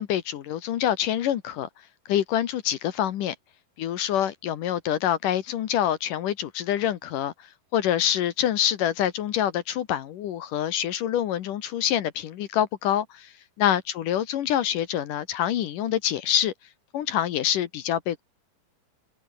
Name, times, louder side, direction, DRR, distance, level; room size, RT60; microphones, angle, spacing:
voice 1, 0.0-1.7 2.1-3.4 3.8-7.3 7.7-13.3 13.6-16.5 16.9-18.2, left 10 dB, 65° left, 2.3 m, -26 dB
omnidirectional pair, 5.1 m